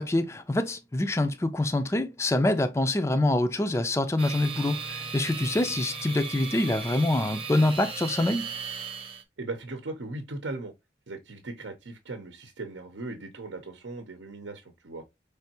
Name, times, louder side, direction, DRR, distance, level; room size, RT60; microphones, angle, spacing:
voice 1, 0.0-8.5, left 1 dB, 15° left, 0.3 m, -25 dB
sound 1, 4.2-9.2, right 5 dB, 30° right, 0.8 m, -37 dB
voice 2, 9.4-10.7 11.1-15.0, right 2 dB, 85° right, 0.8 m, -38 dB
5.4 x 3.3 x 2.8 m
head